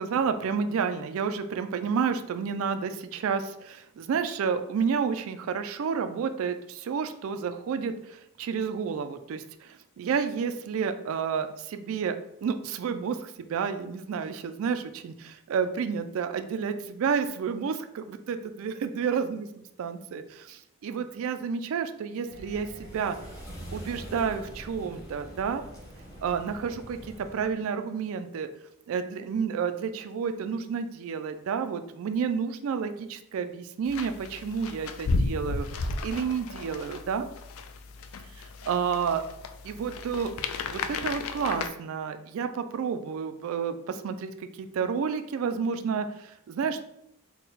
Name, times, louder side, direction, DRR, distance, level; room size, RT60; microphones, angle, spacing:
voice 1, 0.0-23.2 23.7-25.6 26.2-28.5 28.9-35.7 36.0-37.3 38.4-39.3 39.6-40.3 40.7-46.8, right 6 dB, 65° right, 9 dB, 0.3 m, -30 dB
sound 1, 22.3-27.5, equal, 15° left, 0.9 m, -44 dB
sound 2, 33.9-41.7, left 3 dB, 65° left, 0.3 m, -34 dB
3.9 x 2.2 x 3.9 m, 0.77 s
head